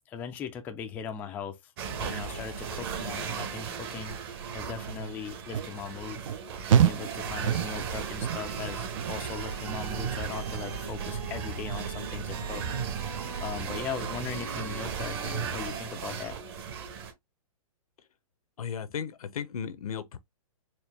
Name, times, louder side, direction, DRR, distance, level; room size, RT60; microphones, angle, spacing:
voice 1, 0.1-1.7 2.0-4.2 4.5-6.2 6.7-12.7 13.4-16.4, left 7 dB, 10° left, 0.3 m, -39 dB
sound 1, 1.8-17.1, right 6 dB, 45° right, 1.2 m, -36 dB
sound 2, 5.5-5.7 6.3-6.4 6.7-7.2 7.5-7.9 8.2-8.6 9.0-9.3 9.7-10.1 10.5-10.6, right 9 dB, 65° right, 0.4 m, -26 dB
sound 3, 8.1-15.8, right 5 dB, 85° right, 1.8 m, -43 dB
voice 2, 18.6-20.2, left 7 dB, 80° left, 0.7 m, -35 dB
4.5 x 2.3 x 3.4 m
hypercardioid pair, 145°, 18 cm